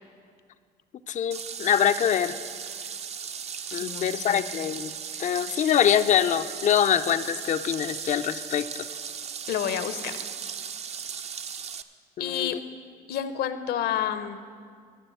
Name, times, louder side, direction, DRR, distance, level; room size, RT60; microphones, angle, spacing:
voice 1, 1.1-2.4 3.7-4.9 5.2-8.9 12.2-12.6, left 9 dB, 45° left, 10 dB, 0.4 m, -24 dB
sound 1, 1.3-11.8, right 7 dB, 40° right, 0.5 m, -37 dB
voice 2, 3.7-4.4 5.3-5.4 9.5-10.2 12.2-12.6 13.1-14.4, left 10 dB, 70° left, 11 dB, 0.8 m, -30 dB
12.5 x 6.8 x 7.8 m, 2.1 s
cardioid pair, 110°, 17 cm